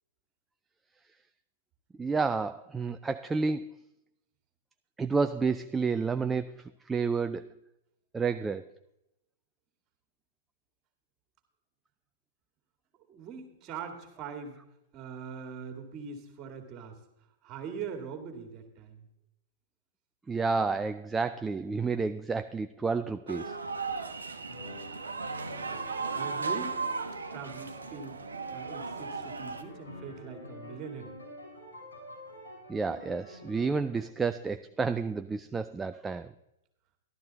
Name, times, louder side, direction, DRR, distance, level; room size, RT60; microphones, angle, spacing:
voice 1, 2.0-3.7 5.0-6.5 6.9-7.5 8.1-8.6 20.3-23.5 32.7-36.3, right 4 dB, 10° right, 9 dB, 0.3 m, -30 dB
voice 2, 13.1-14.6 14.9-17.0 17.4-19.1 26.1-26.8 27.3-28.2 28.5-31.2, right 6 dB, 30° right, 6 dB, 2.1 m, -42 dB
sound 1, 23.3-29.6, right 4 dB, 75° right, 1.0 m, -36 dB
sound 2, 24.5-29.3 29.6-34.0, left 1 dB, 75° left, 5.8 m, -47 dB
12.5 x 12.0 x 4.0 m, 0.88 s
figure-of-eight pair, 105°, 0 cm